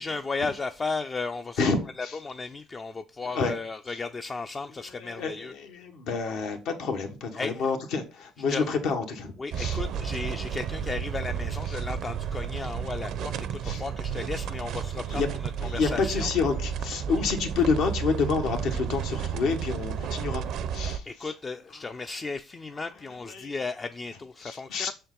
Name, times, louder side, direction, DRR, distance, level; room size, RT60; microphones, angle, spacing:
voice 1, 0.0-1.7 2.0-5.5 7.4-7.5 8.5-8.7 9.4-15.2 15.7-16.3 21.0-24.9, left 4 dB, 30° left, 0.4 m, -34 dB
voice 2, 1.6-2.2 3.2-3.5 4.8-9.8 13.6-13.8 15.0-15.3 15.6-20.4 20.7-21.3 23.3-23.5 24.4-24.9, left 4 dB, 75° left, 1.3 m, -29 dB
sound 1, 9.5-21.0, right 8 dB, 65° right, 0.5 m, -32 dB
6.6 x 4.4 x 3.8 m
supercardioid pair, 85°, 0 cm